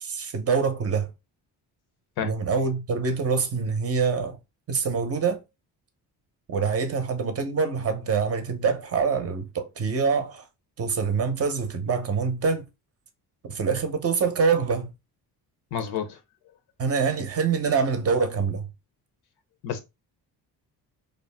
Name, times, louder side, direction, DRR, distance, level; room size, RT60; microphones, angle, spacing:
voice 1, 0.0-1.1 2.2-4.4 4.7-5.4 6.5-10.5 10.8-12.7 13.4-14.9 16.8-18.7, right 5 dB, 40° right, 0.6 m, -25 dB
voice 2, 15.7-16.2 19.6-19.8, left 8 dB, 70° left, 0.7 m, -29 dB
2.5 x 2.0 x 3.3 m
cardioid pair, 105°, 39 cm